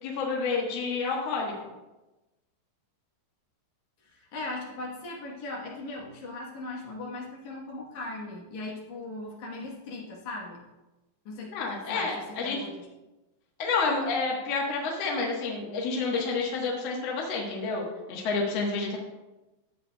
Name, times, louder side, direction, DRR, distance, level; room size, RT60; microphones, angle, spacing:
voice 1, 0.0-1.5 11.5-12.6 13.6-19.0, left 4 dB, 90° left, -2 dB, 1.4 m, -29 dB
voice 2, 4.0-10.6 11.3-11.5 11.9-12.9, left 2 dB, 65° left, -3 dB, 2.0 m, -38 dB
13.0 x 8.0 x 2.3 m, 1.1 s
omnidirectional pair, 5.0 m